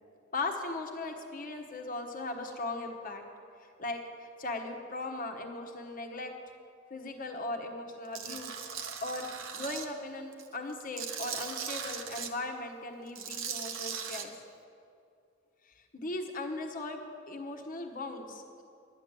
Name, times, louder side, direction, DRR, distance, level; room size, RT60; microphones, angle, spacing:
voice 1, 0.3-3.2 3.6-6.3 6.9-8.6 9.0-14.3 15.6-18.6, left 2 dB, 45° left, 3 dB, 1.2 m, -38 dB
Tools, 8.1-9.9 10.3-12.3 13.1-14.2, right 7 dB, 80° right, 1.0 m, -38 dB
11.5 x 10.5 x 7.5 m, 2.5 s
head